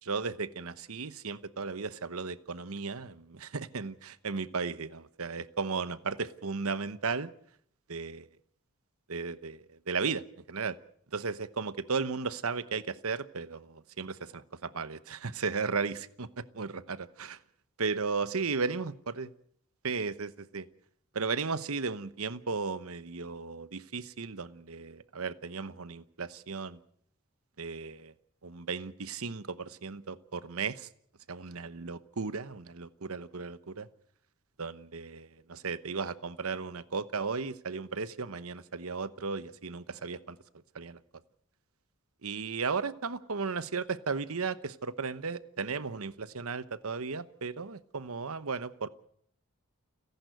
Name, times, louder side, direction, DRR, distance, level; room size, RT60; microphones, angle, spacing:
voice 1, 0.0-7.3 7.9-8.3 9.1-10.8 11.1-17.4 17.8-19.3 19.8-20.7 21.1-26.8 27.6-28.1 28.4-30.9 31.3-33.9 34.6-40.4 40.7-41.0 42.2-48.9, right 4 dB, 80° right, 14 dB, 1.0 m, -35 dB
30.0 x 11.0 x 7.9 m, 0.64 s
head